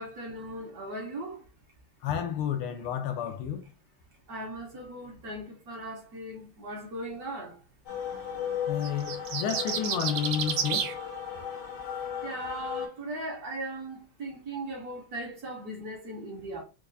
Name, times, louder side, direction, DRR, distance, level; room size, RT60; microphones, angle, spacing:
voice 1, 0.0-1.5 4.3-7.6 12.2-16.6, right 1 dB, 55° right, 1.2 m, -38 dB
voice 2, 2.0-3.6 8.7-10.9, left 8 dB, 85° left, 1.6 m, -31 dB
sound 1, 7.9-12.9, left 8 dB, 60° left, 0.9 m, -36 dB
sound 2, 8.8-10.9, right 7 dB, 85° right, 1.5 m, -30 dB
4.5 x 2.3 x 2.5 m
omnidirectional pair, 2.3 m